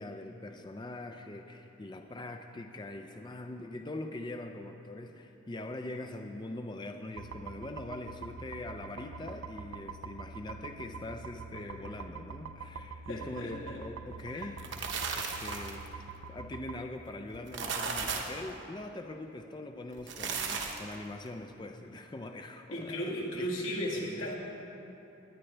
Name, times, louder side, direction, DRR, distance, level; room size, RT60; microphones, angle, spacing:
voice 1, 0.0-15.8 16.3-23.5 24.2-24.3, left 2 dB, 20° left, 5 dB, 0.4 m, -42 dB
sound 1, 7.2-16.8, right 4 dB, 75° right, 0.4 m, -45 dB
voice 2, 13.1-13.8 14.3-14.5 22.7-24.3, equal, 75° left, -4 dB, 2.1 m, -36 dB
sound 2, 14.4-15.9 17.3-18.4 19.9-20.9, right 5 dB, 60° right, 1.1 m, -35 dB
20.0 x 9.6 x 3.3 m, 2.9 s
head